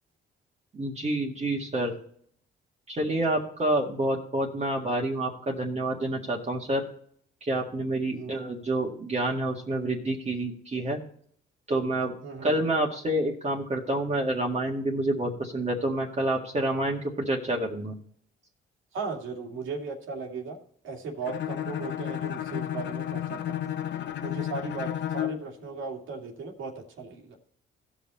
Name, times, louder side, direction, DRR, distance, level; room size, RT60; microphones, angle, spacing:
voice 1, 0.7-2.0 2.9-6.9 7.4-11.0 11.7-12.1 12.4-17.0 17.3-17.9, right 1 dB, 35° right, -1 dB, 1.9 m, -28 dB
voice 2, 12.2-12.5 18.9-20.6 20.8-23.7 24.2-27.4, right 4 dB, 80° right, 0 dB, 2.5 m, -37 dB
Bowed string instrument, 21.2-25.5, left 11 dB, 65° left, 0.8 m, -32 dB
16.5 x 5.7 x 4.2 m, 0.62 s
cardioid pair, 90°, 20 cm